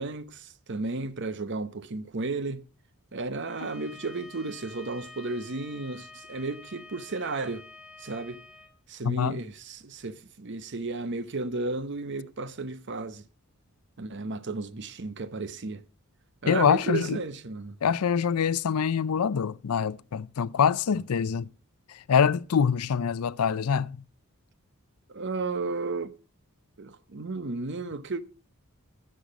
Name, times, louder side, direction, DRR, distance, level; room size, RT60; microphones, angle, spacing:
voice 1, 0.0-2.7 3.1-7.7 8.0-8.4 8.9-13.2 14.0-15.8 16.4-17.8 25.1-26.1 26.8-28.2, right 3 dB, 55° right, 0.8 m, -33 dB
Bowed string instrument, 3.4-8.7, left 3 dB, 5° right, 1.3 m, -49 dB
voice 2, 9.0-9.4 16.5-17.2 17.8-21.5 21.9-24.0, left 7 dB, 80° left, 0.5 m, -25 dB
13.5 x 7.7 x 5.1 m
head